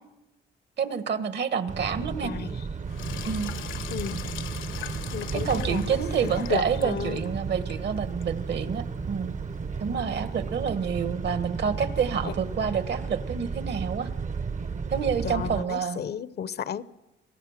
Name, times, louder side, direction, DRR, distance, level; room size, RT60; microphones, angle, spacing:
voice 1, 0.8-2.3 3.2-3.5 5.3-9.4 9.8-14.1 14.9-16.0, right 6 dB, 60° right, 1.4 m, -28 dB
sound 1, 1.7-15.6, right 5 dB, 40° right, 0.9 m, -33 dB
voice 2, 2.2-2.7 3.9-4.2 5.1-7.2 12.2-12.3 15.2-16.8, left 8 dB, 55° left, 0.8 m, -33 dB
Sink (filling or washing), 2.9-10.7, left 10 dB, 75° left, 1.2 m, -42 dB
26.0 x 18.0 x 6.5 m
cardioid pair, 90°, 20 cm